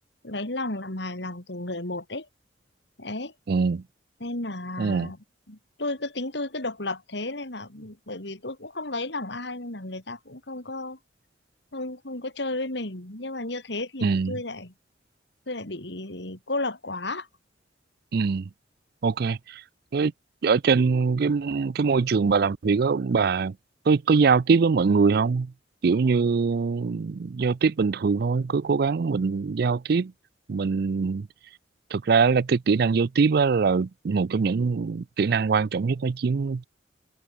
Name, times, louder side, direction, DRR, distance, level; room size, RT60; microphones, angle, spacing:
voice 1, 0.2-2.3 3.0-3.3 4.2-5.2 5.5-11.0 11.7-14.7 15.5-17.3, left 2 dB, 65° left, 3.5 m, -33 dB
voice 2, 3.5-3.8 4.8-5.1 14.0-14.3 18.1-18.5 19.0-19.6 19.9-20.1 20.4-23.5 23.9-25.5 25.8-30.1 30.5-31.3 31.9-36.7, right 5 dB, 55° right, 0.4 m, -23 dB
open air
head